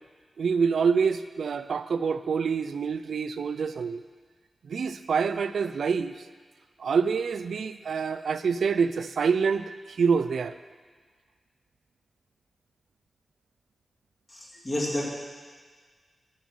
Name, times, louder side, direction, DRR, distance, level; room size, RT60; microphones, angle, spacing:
voice 1, 0.4-4.0 4.6-6.1 6.8-10.5, right 5 dB, 80° right, 12 dB, 0.4 m, -26 dB
voice 2, 14.3-15.1, left 1 dB, 25° left, -4 dB, 2.4 m, -30 dB
12.5 x 5.4 x 6.1 m, 1.5 s
wide cardioid pair, 145°, 0 cm